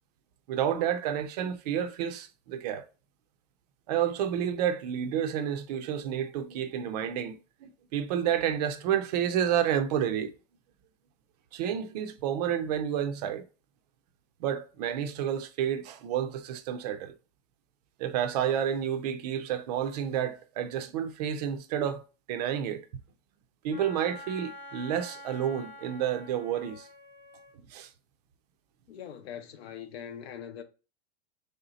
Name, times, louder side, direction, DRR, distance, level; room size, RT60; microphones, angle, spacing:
voice 1, 0.5-2.8 3.9-7.4 7.6-10.3 11.5-13.4 14.4-17.1 18.0-22.8 23.6-26.9 27.7-27.9, right 9 dB, 40° right, 0.4 m, -30 dB
Wind instrument woodwind instrument, 23.7-27.6, left 1 dB, 20° left, 1.0 m, -47 dB
voice 2, 28.9-30.6, left 8 dB, 75° left, 0.8 m, -42 dB
3.5 x 2.8 x 3.9 m
supercardioid pair, 150°, 31 cm